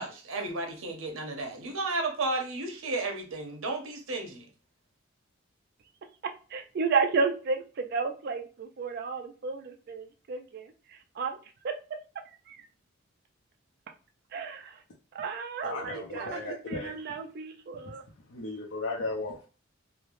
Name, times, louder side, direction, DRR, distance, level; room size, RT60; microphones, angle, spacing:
voice 1, 0.0-4.5, right 2 dB, 80° right, 4 dB, 0.7 m, -33 dB
voice 2, 6.5-10.7 11.2-11.4 11.6-11.7 12.5-12.6 14.3-14.8 15.1-18.0, right 4 dB, 50° right, 5 dB, 0.3 m, -32 dB
voice 3, 15.6-17.2 18.3-19.5, left 2 dB, 70° left, -3 dB, 0.5 m, -36 dB
3.1 x 2.0 x 2.4 m, 0.36 s
head